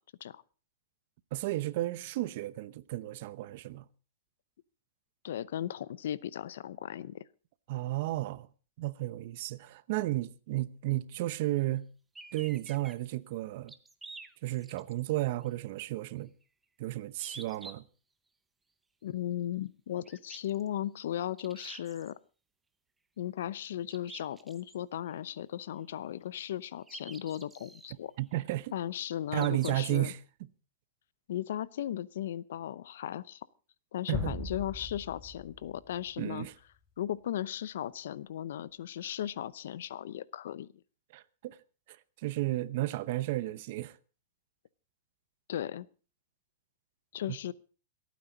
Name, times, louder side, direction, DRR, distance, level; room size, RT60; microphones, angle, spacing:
voice 1, 1.3-3.8 7.7-8.5 8.8-11.9 12.3-13.7 14.4-16.3 16.8-17.8 28.2-28.7 29.3-30.2 34.1-34.4 36.2-36.5 41.1-41.6 41.9-42.0 42.2-44.0 47.3-47.4, right 17 dB, 50° right, 0.8 m, -33 dB
voice 2, 5.2-7.2 19.0-22.2 23.2-28.1 28.7-30.1 31.3-33.4 33.9-36.5 37.0-40.7 45.5-45.9 47.1-47.5, left 11 dB, 70° left, 0.7 m, -36 dB
sound 1, 12.1-12.9 13.7-15.0 15.4-15.5 17.2-17.7 20.1-20.7 21.4-22.1 23.9-24.7 26.9-27.9 29.4-30.0, right 3 dB, 5° right, 0.8 m, -48 dB
sound 2, 34.1-36.1, left 3 dB, 20° left, 3.3 m, -39 dB
28.0 x 9.4 x 3.9 m
supercardioid pair, 160°, 0 cm